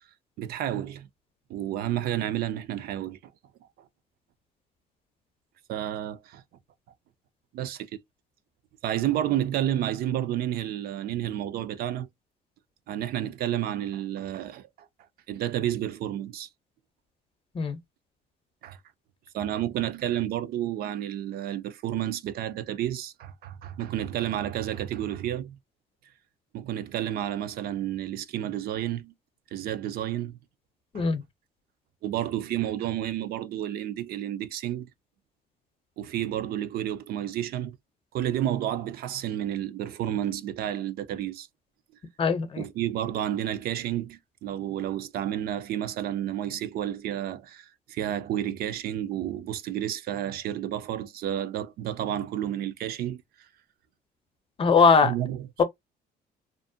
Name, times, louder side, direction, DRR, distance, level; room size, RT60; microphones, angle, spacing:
voice 1, 0.4-1.1 1.5-3.2 5.7-6.4 7.5-7.9 8.8-12.1 12.9-14.7 15.3-16.5 18.6-18.8 19.3-25.6 26.5-29.1 29.5-30.4 30.9-31.1 32.0-34.9 36.0-37.8 38.1-41.5 42.5-53.2 54.8-55.6, right 11 dB, 65° right, 0.4 m, -31 dB
voice 2, 42.2-42.6 54.6-55.1 55.6-55.7, left 5 dB, 30° left, 0.6 m, -20 dB
2.5 x 2.0 x 2.6 m
cardioid pair, 110°, 17 cm